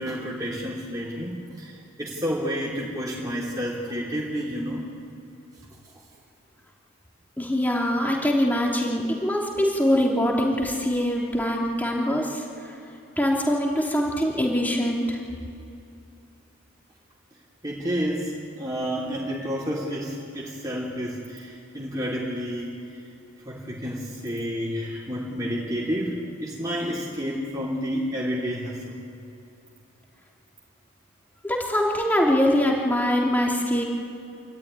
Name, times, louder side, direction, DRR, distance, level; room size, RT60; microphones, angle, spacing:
voice 1, 0.0-4.9 17.6-22.7 23.4-28.9, equal, 20° right, -5 dB, 3.1 m, -30 dB
voice 2, 7.4-12.4 13.2-15.2 31.4-33.8, equal, 10° left, -1 dB, 3.0 m, -23 dB
27.5 x 13.5 x 9.8 m, 2.7 s
head